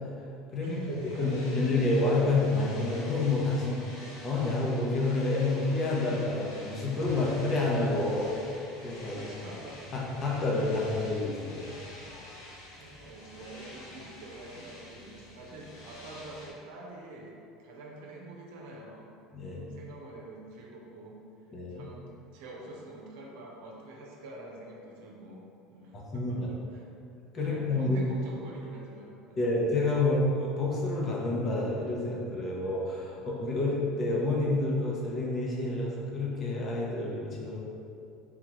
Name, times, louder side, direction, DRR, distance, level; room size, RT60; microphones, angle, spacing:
sound 1, 0.6-16.5, left 1 dB, 80° left, 1.0 m, -48 dB
voice 1, 0.6-1.8 9.1-10.0 10.7-10.9 12.0-12.5 12.8-17.3 17.6-19.1 19.4-21.2 21.7-22.0 22.3-26.9 27.4-29.5, right 2 dB, 75° right, -1 dB, 0.7 m, -46 dB
voice 2, 1.2-9.3 9.9-11.6 19.3-19.7 21.5-21.8 25.9-26.5 27.3-28.0 29.4-37.6, left 2 dB, 35° left, -4 dB, 0.9 m, -29 dB
3.7 x 3.6 x 3.1 m, 2.6 s
supercardioid pair, 100°, 0 cm